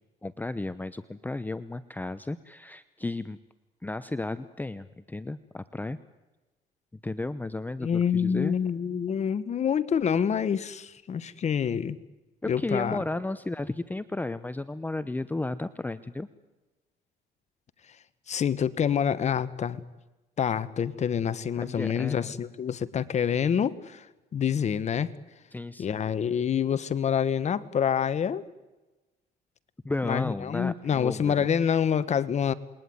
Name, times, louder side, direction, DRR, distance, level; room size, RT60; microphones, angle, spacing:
voice 1, 0.2-3.4 3.8-6.0 7.0-8.6 12.4-16.3 21.6-22.3 25.5-26.0 29.8-31.5, left 2 dB, 10° left, 14 dB, 0.8 m, -33 dB
voice 2, 7.8-12.0 12.5-13.0 18.3-19.8 20.4-24.1 24.3-25.1 25.8-28.4 30.0-32.5, left 8 dB, 40° left, 15 dB, 1.3 m, -27 dB
28.0 x 21.5 x 9.5 m, 1.1 s
cardioid pair, 110°, 17 cm